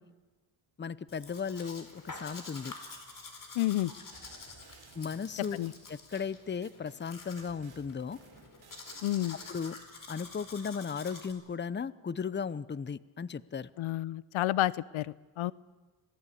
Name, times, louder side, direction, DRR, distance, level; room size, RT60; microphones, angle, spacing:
voice 1, 0.8-2.7 4.9-5.6 5.9-8.2 9.5-9.8 10.1-13.7, left 6 dB, 20° left, 18 dB, 0.7 m, -36 dB
Domestic sounds home sounds, 1.1-11.3, left 3 dB, 40° left, 4.4 m, -48 dB
voice 2, 3.6-3.9 5.5-5.7 9.0-9.4 13.8-15.5, left 15 dB, 75° left, 21 dB, 0.7 m, -30 dB
sound 1, 4.1-7.0 7.4-9.7, right 5 dB, 50° right, 3.9 m, -57 dB
27.0 x 18.0 x 8.5 m, 1.3 s
cardioid pair, 90°, 49 cm